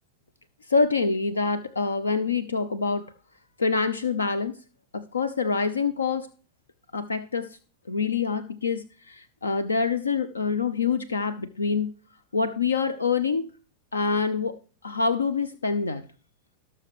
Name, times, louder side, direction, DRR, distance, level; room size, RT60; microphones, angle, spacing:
voice 1, 0.7-3.1 3.6-4.6 4.9-6.3 6.9-7.6 7.9-11.9 12.3-13.5 13.9-16.0, left 4 dB, 75° left, 15 dB, 0.8 m, -26 dB
18.0 x 6.9 x 3.2 m, 0.36 s
figure-of-eight pair, 90°, 0 cm